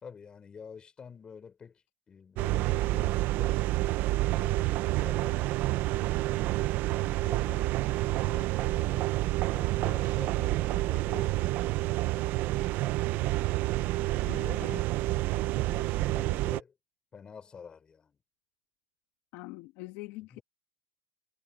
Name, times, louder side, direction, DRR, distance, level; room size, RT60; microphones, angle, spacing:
voice 1, 0.0-1.8 2.1-5.6 6.4-9.1 9.5-11.5 13.9-14.8 15.5-16.7 17.1-18.2 20.3-20.4, left 6 dB, 25° left, 4.0 m, -49 dB
sound 1, 2.4-16.6, right 18 dB, 50° right, 0.9 m, -28 dB
voice 2, 14.3-14.9 19.3-20.4, left 20 dB, 60° left, 1.7 m, -43 dB
supercardioid pair, 125°, 4 cm